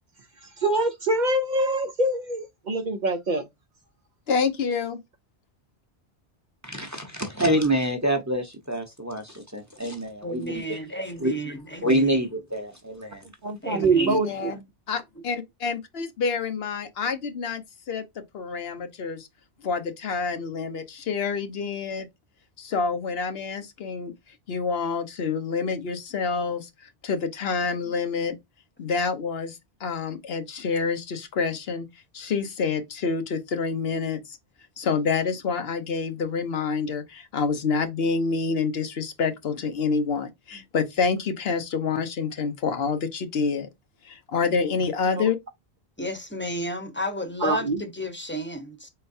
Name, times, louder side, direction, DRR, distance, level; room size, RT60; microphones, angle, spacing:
voice 1, 0.6-3.4 13.4-14.5 45.1-45.2 47.4-47.8, right 2 dB, 55° right, 0.7 m, -24 dB
voice 2, 4.3-5.0 14.1-14.6 14.9-18.0 18.3-19.3 19.6-22.1 22.6-24.1 24.5-26.7 27.0-28.4 28.8-31.9 32.1-34.4 34.8-43.7 44.0-45.4, left 5 dB, 75° left, 1.0 m, -27 dB
voice 3, 6.6-11.4 11.8-13.2 14.0-14.1, right 1 dB, 20° right, 0.8 m, -27 dB
voice 4, 10.2-12.2 13.6-14.2 14.5-14.6 46.0-48.9, equal, 10° left, 0.8 m, -32 dB
4.4 x 3.9 x 2.6 m
omnidirectional pair, 1.1 m